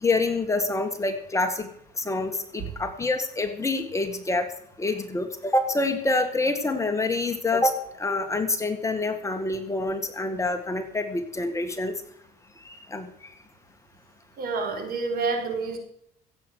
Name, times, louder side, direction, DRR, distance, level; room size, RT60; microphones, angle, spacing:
voice 1, 0.0-1.7 2.0-4.5 4.8-12.0 12.7-13.1, left 2 dB, 15° left, 5 dB, 1.8 m, -26 dB
voice 2, 14.4-15.8, right 4 dB, 60° right, 5 dB, 3.9 m, -28 dB
15.5 x 8.3 x 6.4 m, 0.70 s
cardioid pair, 110°, 17 cm